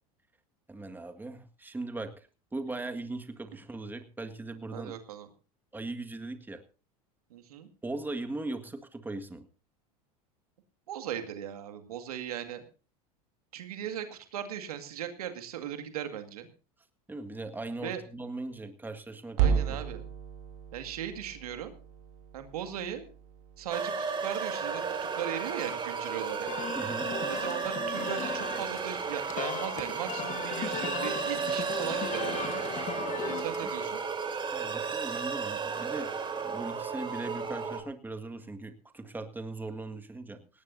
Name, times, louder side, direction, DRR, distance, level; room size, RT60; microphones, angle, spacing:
voice 1, 0.7-2.3 2.5-4.9 5.7-6.6 7.8-9.5 17.1-19.8 26.8-27.1 34.5-40.6, right 2 dB, 10° right, 7 dB, 1.8 m, -39 dB
voice 2, 4.7-5.3 7.3-7.7 10.9-12.6 13.5-16.5 17.8-18.0 19.4-20.0 20.7-21.7 22.3-23.1 23.6-24.8 25.2-26.5 27.3-32.7 33.2-34.0, right 10 dB, 85° right, 8 dB, 2.1 m, -38 dB
sound 1, 19.3-23.7, right 7 dB, 70° right, 3.0 m, -33 dB
sound 2, 23.7-37.8, right 5 dB, 25° right, 3.6 m, -34 dB
sound 3, 26.5-33.7, left 9 dB, 40° left, 1.4 m, -38 dB
18.0 x 17.5 x 2.7 m, 0.36 s
hypercardioid pair, 95°, 19 cm